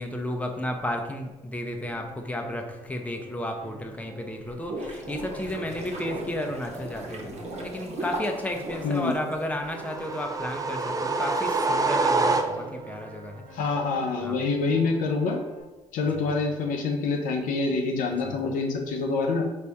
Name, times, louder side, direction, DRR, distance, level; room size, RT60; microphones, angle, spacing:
voice 1, 0.0-13.4 14.2-14.4 18.2-18.4, left 1 dB, 10° left, 3 dB, 0.7 m, -33 dB
Piano, 1.9-15.6, right 2 dB, 75° right, 1.1 m, -47 dB
sound 1, 4.4-9.7, right 1 dB, 50° right, 1.2 m, -37 dB
sound 2, 9.7-12.9, right 3 dB, 25° right, 0.5 m, -26 dB
voice 2, 13.5-15.4 15.9-19.4, left 4 dB, 70° left, 2 dB, 0.6 m, -26 dB
4.3 x 2.7 x 3.5 m, 1.1 s
hypercardioid pair, 55°, 14 cm